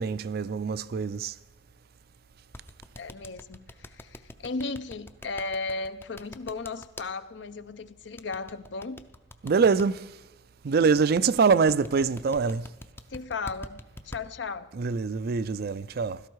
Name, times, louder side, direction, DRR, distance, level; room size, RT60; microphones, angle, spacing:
voice 1, 0.0-1.4 9.4-10.2 10.6-12.7 14.7-16.2, right 5 dB, 55° right, 0.4 m, -24 dB
sound 1, 2.5-7.1 8.2-9.9 11.4-14.2, left 1 dB, 10° left, 0.5 m, -43 dB
voice 2, 3.0-9.0 13.1-14.7, left 3 dB, 65° left, 0.6 m, -35 dB
16.0 x 13.0 x 4.7 m
head